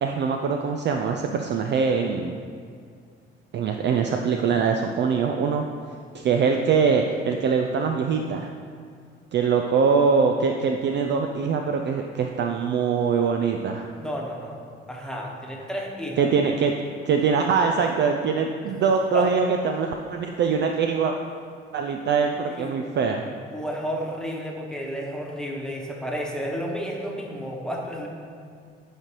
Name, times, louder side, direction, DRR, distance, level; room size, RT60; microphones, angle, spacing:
voice 1, 0.0-2.4 3.5-5.6 6.1-8.5 9.3-13.9 16.2-16.7 17.1-21.1 21.7-23.2, right 5 dB, 35° right, 3 dB, 0.4 m, -23 dB
voice 2, 14.0-14.6 14.9-16.3 19.1-19.3 22.5-23.0 23.5-28.1, equal, ahead, -2 dB, 1.2 m, -32 dB
9.6 x 5.1 x 3.1 m, 2.2 s
figure-of-eight pair, 45°, 31 cm